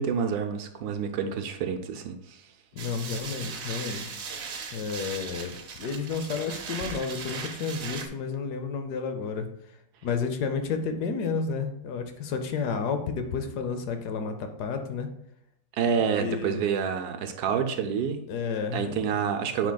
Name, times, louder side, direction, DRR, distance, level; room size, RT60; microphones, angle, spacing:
voice 1, 0.0-2.4 15.7-18.2 18.7-19.7, right 7 dB, 75° right, 7 dB, 1.1 m, -28 dB
voice 2, 2.7-4.2 4.7-9.5 10.0-15.1 16.0-16.6 18.3-19.1, left 5 dB, 70° left, 7 dB, 1.2 m, -31 dB
sound 1, 2.8-8.1, right 5 dB, 55° right, 0.8 m, -38 dB
9.1 x 4.9 x 2.2 m, 0.77 s
omnidirectional pair, 1.8 m